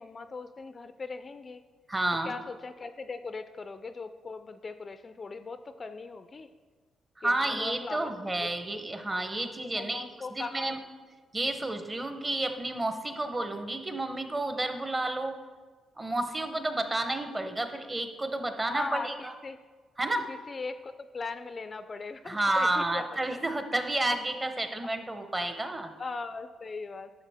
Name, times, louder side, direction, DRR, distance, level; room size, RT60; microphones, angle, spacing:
voice 1, 0.0-1.6 2.2-6.5 7.2-8.1 8.4-8.5 9.6-10.7 18.6-19.6 20.3-23.4 26.0-27.1, left 4 dB, 35° left, 11 dB, 0.3 m, -39 dB
voice 2, 1.9-2.3 7.2-10.0 10.4-10.8 11.3-15.4 16.0-19.3 20.0-20.3 22.3-25.9, right 2 dB, 20° right, 7 dB, 0.7 m, -31 dB
10.5 x 6.2 x 3.4 m, 1.4 s
cardioid pair, 105°, 0 cm